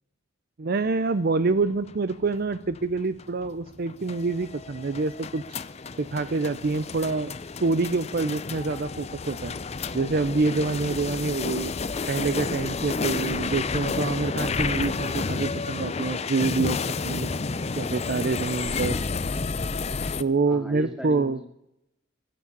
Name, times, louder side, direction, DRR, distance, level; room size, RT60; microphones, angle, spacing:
voice 1, 0.6-5.4 6.0-7.3 7.6-9.5 9.9-11.7 12.1-17.3 17.8-19.0 20.2-21.4, right 3 dB, 50° right, 13 dB, 0.5 m, -26 dB
sound 1, 1.6-20.2, left 4 dB, 30° left, 0.5 m, -31 dB
voice 2, 18.9-19.3 20.5-21.5, equal, 5° right, 3 dB, 2.3 m, -39 dB
15.0 x 7.2 x 9.8 m, 0.82 s
head